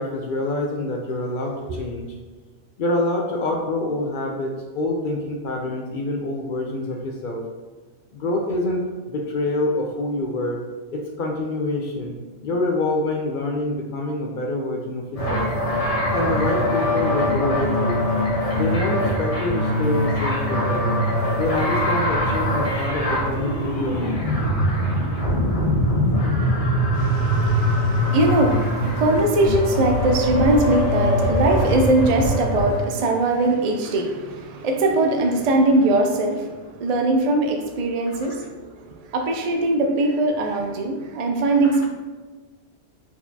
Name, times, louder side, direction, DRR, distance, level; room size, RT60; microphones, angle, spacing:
voice 1, 0.0-2.1 2.8-7.4 8.1-8.8 9.1-10.6 10.9-12.2 12.4-15.5 16.1-18.0 18.5-21.0 21.4-24.5 31.6-31.7 41.6-41.9, left 2 dB, 60° left, 1 dB, 0.5 m, -26 dB
sound 1, 15.2-32.8, equal, 35° left, 0.9 m, -22 dB
voice 2, 26.9-36.5 36.8-38.4 39.1-41.9, right 2 dB, 65° right, 3 dB, 0.4 m, -21 dB
4.4 x 4.1 x 2.7 m, 1.3 s
omnidirectional pair, 1.2 m